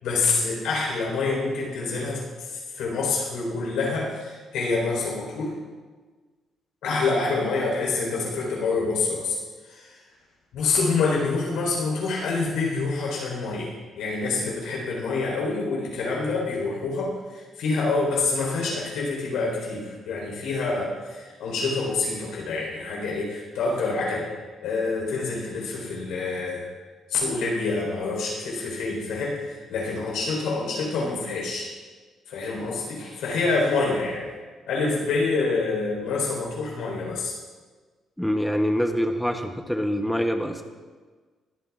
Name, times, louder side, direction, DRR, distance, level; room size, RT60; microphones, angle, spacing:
voice 1, 0.0-5.5 6.8-9.4 9.7-10.0 10.5-24.3 24.6-26.7 27.1-31.7 32.3-34.3 34.7-37.3, left 3 dB, 90° left, -2 dB, 4.2 m, -27 dB
voice 2, 38.2-40.6, equal, 5° left, 4 dB, 0.9 m, -25 dB
21.5 x 9.0 x 2.5 m, 1.4 s
cardioid pair, 90°, 0 cm